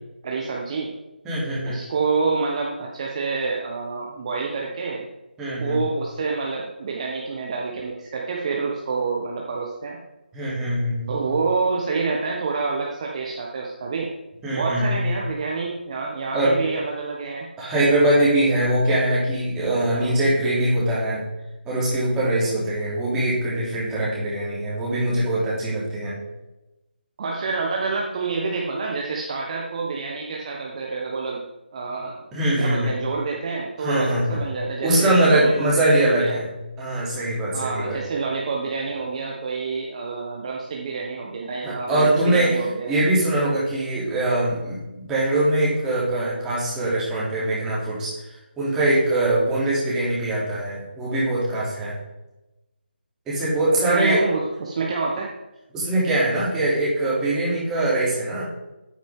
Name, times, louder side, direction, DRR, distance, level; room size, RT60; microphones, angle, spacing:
voice 1, 0.2-0.9 1.6-5.1 5.5-10.0 11.1-14.1 14.5-17.5 19.9-20.1 27.2-31.4 31.7-32.3 32.6-36.4 37.5-42.9 53.8-55.3, right 4 dB, 35° right, -2 dB, 1.2 m, -28 dB
voice 2, 1.2-1.8 5.4-5.8 10.3-11.2 14.4-15.0 16.3-16.6 17.6-21.2 21.6-26.2 32.3-32.9 33.8-34.4 34.8-36.5 36.8-38.0 41.6-42.6 42.9-48.1 48.6-52.0 53.3-54.2 55.7-58.4, right 1 dB, 10° right, -8 dB, 2.9 m, -22 dB
9.1 x 9.0 x 3.7 m, 0.99 s
figure-of-eight pair, 160°, 6 cm